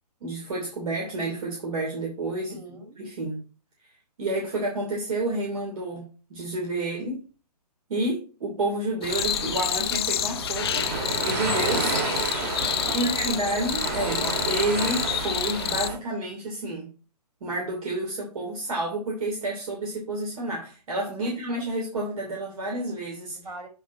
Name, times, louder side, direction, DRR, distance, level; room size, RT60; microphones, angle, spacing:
voice 1, 0.2-2.6 3.0-3.4 4.2-7.2 7.9-10.9 11.2-11.9 12.9-16.9 17.4-23.4, right 2 dB, 55° right, -2 dB, 2.9 m, -30 dB
voice 2, 2.5-3.0 10.9-11.2 12.7-13.7 21.2-21.7 23.3-23.7, right 1 dB, 75° right, 3 dB, 4.6 m, -43 dB
sound 1, 9.0-15.9, left 10 dB, 40° left, 0.5 m, -29 dB
sound 2, 9.1-16.0, right 4 dB, 30° right, 2.2 m, -31 dB
9.3 x 4.4 x 4.3 m, 0.35 s
figure-of-eight pair, 135°, 21 cm